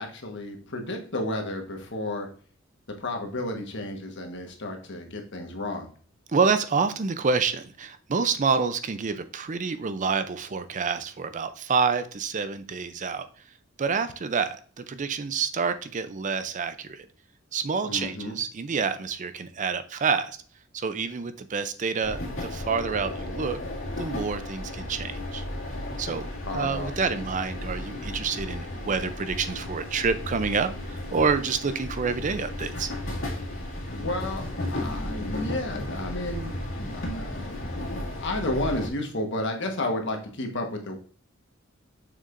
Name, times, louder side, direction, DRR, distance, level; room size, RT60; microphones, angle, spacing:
voice 1, 0.0-2.3 3.0-5.9 17.8-18.3 26.4-27.2 33.9-37.7 38.1-41.0, left 1 dB, 60° left, 3 dB, 1.3 m, -32 dB
voice 2, 6.3-13.3 13.8-17.1 17.5-20.4 20.7-23.6 24.0-25.4 26.0-26.3 26.5-32.9, right 5 dB, 35° right, 11 dB, 0.5 m, -28 dB
sound 1, 22.0-38.9, left 1 dB, 90° left, 2.1 m, -34 dB
6.6 x 6.5 x 2.5 m, 0.43 s
head